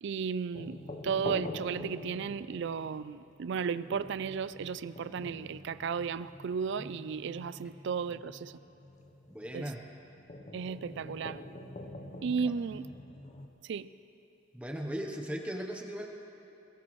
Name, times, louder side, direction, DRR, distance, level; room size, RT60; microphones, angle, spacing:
voice 1, 0.0-8.5 9.5-9.7 10.5-11.4 12.2-12.9 13.6-13.9, right 6 dB, 65° right, 16 dB, 0.4 m, -34 dB
sound 1, 0.5-13.5, left 1 dB, 35° left, 0.8 m, -46 dB
voice 2, 9.3-9.8 14.5-16.1, equal, 5° right, 1 dB, 0.8 m, -37 dB
21.5 x 16.5 x 3.1 m, 2.9 s
head